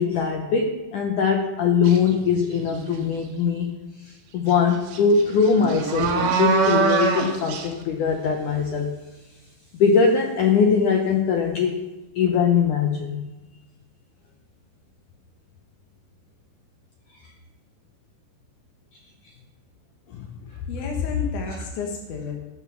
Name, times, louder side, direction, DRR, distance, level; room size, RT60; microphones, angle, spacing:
voice 1, 0.0-3.7 4.0-8.9 9.7-11.7 12.1-13.2 20.1-20.2 21.5-21.7, left 6 dB, 85° left, 3 dB, 1.7 m, -21 dB
sound 1, 1.8-2.1 2.6-3.2 4.5-4.6 4.9-7.7, right 6 dB, 80° right, 3.6 m, -24 dB
voice 2, 20.7-22.3, left 6 dB, 65° left, 1 dB, 2.1 m, -29 dB
15.5 x 7.0 x 6.3 m, 1.1 s
omnidirectional pair, 5.0 m